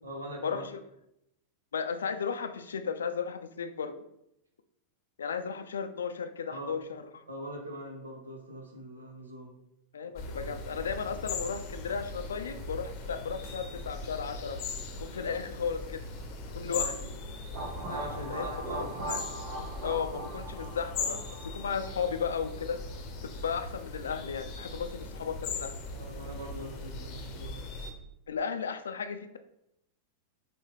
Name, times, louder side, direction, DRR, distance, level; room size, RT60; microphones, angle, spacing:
voice 1, 0.0-0.6 6.5-6.7 7.3-9.5 16.6-16.9 17.9-19.1 25.9-27.6, right 1 dB, 75° right, 1 dB, 1.0 m, -42 dB
voice 2, 1.7-3.9 5.2-7.2 9.9-14.6 15.0-16.1 16.5-16.9 18.3-18.5 18.8-19.2 19.8-21.2 21.5-22.8 23.2-25.7 28.3-29.4, left 6 dB, 70° left, 9 dB, 0.4 m, -34 dB
sound 1, 10.2-27.9, left 3 dB, 40° left, 0.7 m, -39 dB
sound 2, 17.5-22.3, right 2 dB, 35° right, 1.5 m, -40 dB
5.7 x 2.2 x 3.3 m, 0.80 s
figure-of-eight pair, 90°, 0 cm